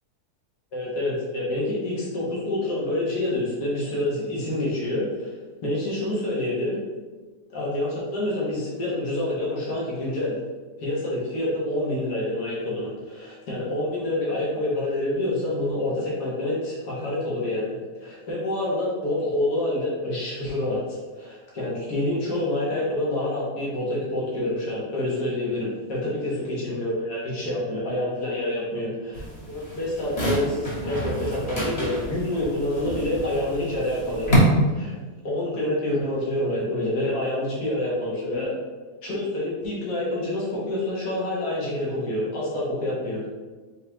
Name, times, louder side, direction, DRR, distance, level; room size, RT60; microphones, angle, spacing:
voice 1, 0.7-5.3 5.6-6.8 7.5-10.3 10.8-34.4 34.7-34.9 35.2-38.5 39.0-43.2, left 1 dB, 80° left, -6 dB, 1.8 m, -27 dB
sound 1, 29.1-34.4, equal, 25° left, 1.2 m, -30 dB
4.2 x 4.0 x 2.9 m, 1.3 s
omnidirectional pair, 1.7 m